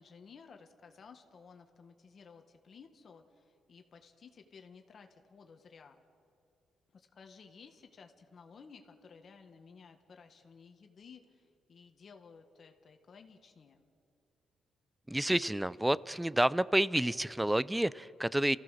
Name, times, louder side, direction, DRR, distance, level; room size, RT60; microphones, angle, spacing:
voice 1, 0.0-6.0 6.9-13.9, left 5 dB, 50° left, 5 dB, 1.7 m, -56 dB
voice 2, 15.1-18.6, right 1 dB, 5° right, 19 dB, 0.5 m, -29 dB
29.5 x 15.5 x 6.6 m, 2.4 s
cardioid pair, 90°, 0 cm